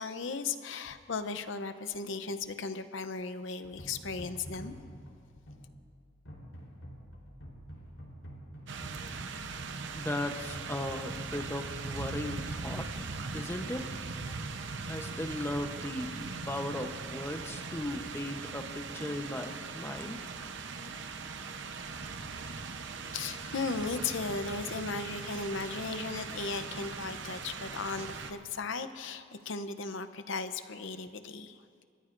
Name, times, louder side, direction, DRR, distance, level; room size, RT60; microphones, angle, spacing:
voice 1, 0.0-4.8 23.1-31.6, left 4 dB, 65° left, 10 dB, 0.7 m, -36 dB
sound 1, 3.7-13.9, equal, 90° left, 3.8 m, -49 dB
sound 2, 8.7-28.3, right 4 dB, 60° right, 0.8 m, -40 dB
voice 2, 9.9-13.0 13.3-14.0 14.9-20.2, left 1 dB, 10° left, 5 dB, 0.8 m, -37 dB
29.5 x 14.5 x 2.6 m, 2.1 s
head